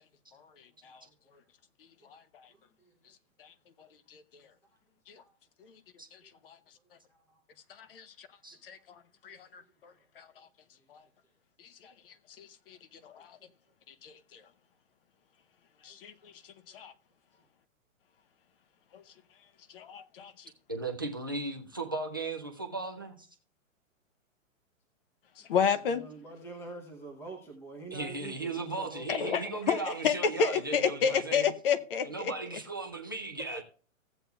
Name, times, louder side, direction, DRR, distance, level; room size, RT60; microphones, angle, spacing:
voice 1, 1.0-1.4 2.0-2.1 2.5-3.1 3.8-3.9 5.2-5.3 5.6-5.7 6.2-6.4 7.1-7.4 8.5-8.6 9.3-9.4 9.9-10.0 10.8-10.9 15.9-16.0 16.7-16.9 25.4-29.1, right 3 dB, 5° left, 0.7 m, -48 dB
voice 2, 3.8-4.2 5.1-5.2 6.1-6.2 6.4-6.6 7.7-8.3 8.6-10.5 10.9-11.0 11.6-11.9 12.4-12.8 13.0-13.4 13.9-14.4 15.8-16.3 16.7-16.9 18.9-19.0 19.7-20.5 25.5-26.0 29.1-32.3 33.5-33.6, left 7 dB, 45° left, 0.7 m, -32 dB
voice 3, 20.7-23.3 27.9-31.5 32.0-33.6, right 3 dB, 20° right, 0.3 m, -36 dB
15.5 x 7.8 x 2.3 m
hypercardioid pair, 160°, 41 cm